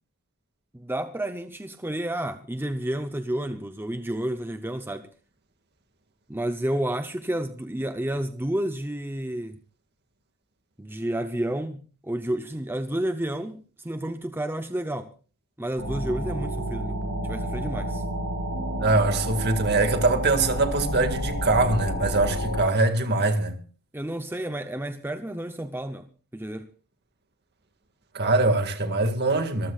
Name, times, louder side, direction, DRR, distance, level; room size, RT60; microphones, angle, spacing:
voice 1, 0.7-5.1 6.3-9.6 10.8-15.1 15.6-18.0 23.9-26.7, right 1 dB, 10° right, 0.7 m, -31 dB
sound 1, 15.8-22.6, equal, 75° right, 7.9 m, -30 dB
voice 2, 18.8-23.6 28.1-29.7, right 2 dB, 50° right, 2.0 m, -23 dB
26.0 x 14.5 x 2.4 m
head